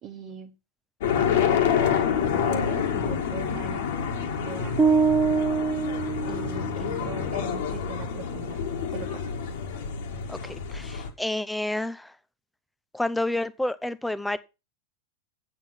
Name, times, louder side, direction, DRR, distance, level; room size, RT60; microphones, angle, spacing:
voice 1, 0.0-0.5 2.2-4.0 4.4-4.8 6.3-8.6 8.9-9.2, right 7 dB, 30° right, 1.4 m, -40 dB
sound 1, 1.0-11.1, left 7 dB, 55° left, 2.1 m, -27 dB
sound 2, 4.8-7.0, right 5 dB, 15° right, 1.2 m, -24 dB
voice 2, 10.3-12.1 12.9-14.4, left 1 dB, 5° left, 0.7 m, -29 dB
8.7 x 7.2 x 6.1 m
figure-of-eight pair, 90°, 0 cm